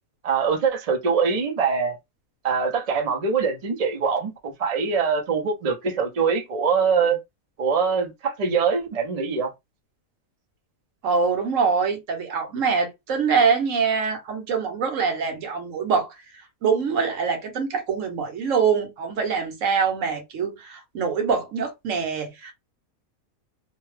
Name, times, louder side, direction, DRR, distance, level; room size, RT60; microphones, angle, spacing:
voice 1, 0.2-2.0 2.4-7.2 7.6-9.5, right 5 dB, 45° right, 0.4 m, -23 dB
voice 2, 11.0-16.2 16.6-22.5, right 5 dB, 65° right, 1.1 m, -24 dB
2.7 x 2.2 x 3.2 m
omnidirectional pair, 1.5 m